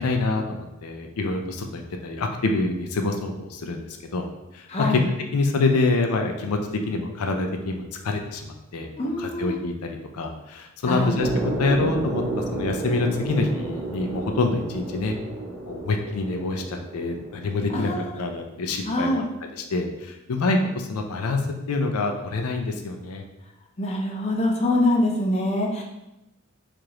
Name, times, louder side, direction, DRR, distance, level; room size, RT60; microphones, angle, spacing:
voice 1, 0.0-4.2 4.5-5.0 5.3-8.9 9.2-15.1 15.6-19.2 19.5-21.4 21.7-23.2, left 3 dB, 85° left, 4 dB, 0.5 m, -26 dB
voice 2, 4.7-5.0 9.0-9.5 10.9-11.1 17.7-18.1 18.9-19.2 23.8-25.8, left 1 dB, 30° left, 0 dB, 0.5 m, -24 dB
sound 1, 11.2-17.5, right 2 dB, 20° right, 1.0 m, -31 dB
4.7 x 2.5 x 2.9 m, 0.93 s
head